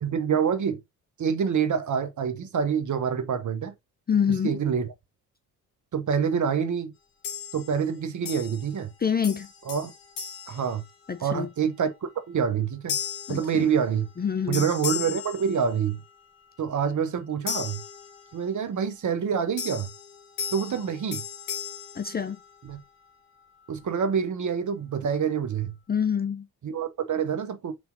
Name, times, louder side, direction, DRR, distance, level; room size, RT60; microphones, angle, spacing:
voice 1, 0.0-0.8 1.2-3.7 4.4-4.9 5.9-6.9 7.5-8.9 9.7-9.9 10.5-10.8 11.2-13.0 13.3-14.1 14.5-16.0 16.6-17.8 18.3-19.9 20.5-21.2 22.6-22.8 23.7-25.7 26.6-27.7, right 7 dB, 40° right, 1.0 m, -26 dB
voice 2, 4.1-4.6 9.0-9.5 11.1-11.5 13.3-13.7 14.2-14.7 21.9-22.4 25.9-26.5, left 7 dB, 20° left, 0.5 m, -26 dB
sound 1, 7.2-7.9 8.2-8.9 9.2-11.4 11.9-12.2 12.9-14.2 14.5-16.1 17.5-18.6 19.6-22.8, left 7 dB, 75° left, 2.5 m, -36 dB
6.1 x 3.3 x 2.6 m
hypercardioid pair, 45°, 45 cm